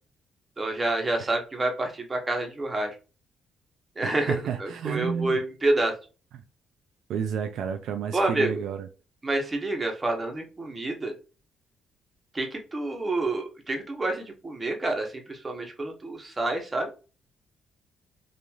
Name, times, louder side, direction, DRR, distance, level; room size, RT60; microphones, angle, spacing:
voice 1, 0.6-2.9 4.0-4.3 4.6-5.9 8.1-8.6 9.2-11.1 12.3-16.9, right 2 dB, 25° right, 0.9 m, -28 dB
voice 2, 4.0-5.4 7.1-8.9, right 7 dB, 75° right, 0.3 m, -31 dB
3.0 x 2.4 x 2.3 m
cardioid pair, 90°, 0 cm